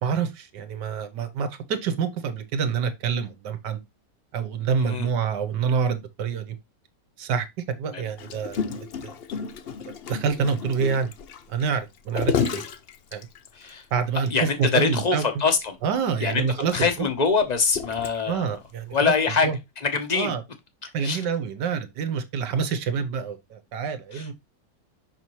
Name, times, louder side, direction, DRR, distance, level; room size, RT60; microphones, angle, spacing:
voice 1, 0.0-3.8 4.3-6.5 7.2-9.2 9.8-11.1 11.5-12.6 13.1-13.3 13.9-15.2 15.8-16.7 17.0-17.1 18.3-19.1 19.4-19.6 20.1-20.4 20.9-24.3, right 6 dB, 80° right, 1.6 m, -27 dB
voice 2, 4.8-5.1 7.9-8.1 13.5-13.8 14.3-15.8 16.2-16.4 16.7-18.5 18.9-19.5 19.8-20.3 21.0-21.2 24.1-24.3, left 5 dB, 35° left, 0.8 m, -24 dB
Gurgling, 8.2-13.7 14.2-14.3 14.6-14.8 15.1-15.2 16.0-18.5 19.1-19.3, left 7 dB, 80° left, 0.5 m, -31 dB
5.6 x 5.6 x 3.1 m
omnidirectional pair, 1.9 m